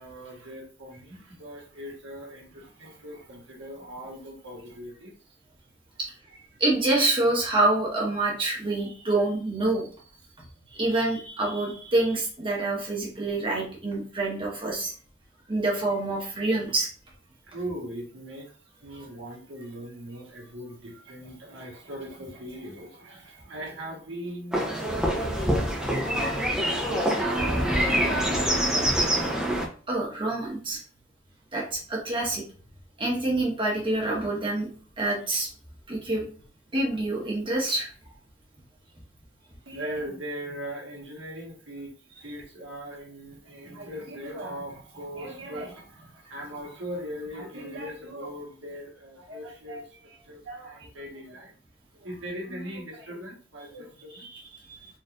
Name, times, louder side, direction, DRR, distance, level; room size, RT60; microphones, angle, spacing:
voice 1, 0.0-5.4 17.5-18.6 18.8-26.3 26.6-29.3 39.6-51.5 51.9-54.3, equal, 85° right, -2 dB, 1.5 m, -39 dB
voice 2, 6.6-9.9 10.7-14.9 15.5-16.9 29.9-30.8 31.5-32.4 33.0-34.7 35.0-35.5 35.9-36.2 36.7-37.9 54.3-54.4, right 2 dB, 25° right, -2 dB, 1.3 m, -26 dB
sound 1, 24.5-29.7, equal, 5° right, 0.7 m, -25 dB
4.2 x 3.2 x 2.6 m, 0.41 s
head